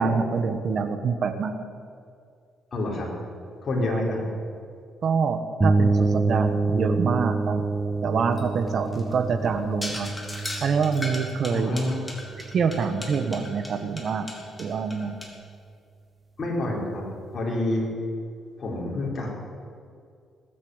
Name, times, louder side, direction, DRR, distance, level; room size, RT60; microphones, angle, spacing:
voice 1, 0.0-1.5 3.9-4.0 5.0-7.6 8.0-10.1 10.6-11.7 12.5-14.3 14.6-15.1, right 5 dB, 55° right, 8 dB, 1.4 m, -26 dB
voice 2, 2.7-3.1 3.6-4.2 11.5-12.1 16.4-17.0 17.3-17.9 18.6-19.3, left 1 dB, 40° left, -3 dB, 4.8 m, -27 dB
sound 1, 5.6-13.3, right 3 dB, 25° right, 0.7 m, -27 dB
sound 2, 8.3-15.3, left 1 dB, 15° left, 3.3 m, -38 dB
19.5 x 8.6 x 8.1 m, 2.3 s
cardioid pair, 90°, 0 cm